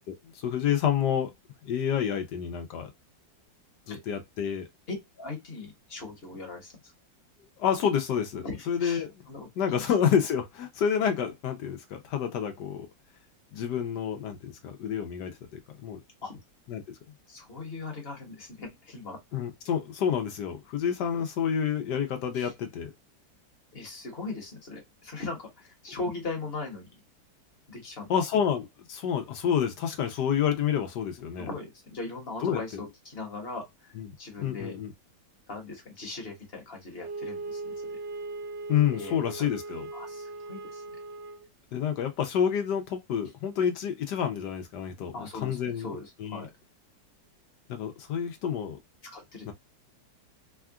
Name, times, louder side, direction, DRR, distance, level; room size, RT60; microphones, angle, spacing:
voice 1, 0.3-1.3 1.6-2.9 3.9-4.6 7.6-9.1 9.6-12.9 13.5-16.0 16.7-16.8 19.3-22.9 28.1-31.5 32.4-32.6 34.0-34.1 34.4-34.9 38.7-39.9 41.7-46.5 47.7-48.8 49.5-49.6, left 8 dB, 70° left, 1.2 m, -29 dB
voice 2, 5.2-6.7 8.4-9.5 9.8-9.9 16.2-16.4 17.3-19.2 22.3-22.5 23.7-27.0 27.7-28.1 31.3-34.8 35.5-38.0 38.9-39.2 39.9-40.8 45.1-46.5 49.1-49.5, left 3 dB, 35° left, 1.2 m, -39 dB
Wind instrument woodwind instrument, 37.0-41.5, right 3 dB, 75° right, 1.4 m, -39 dB
3.6 x 2.3 x 2.3 m
omnidirectional pair, 2.0 m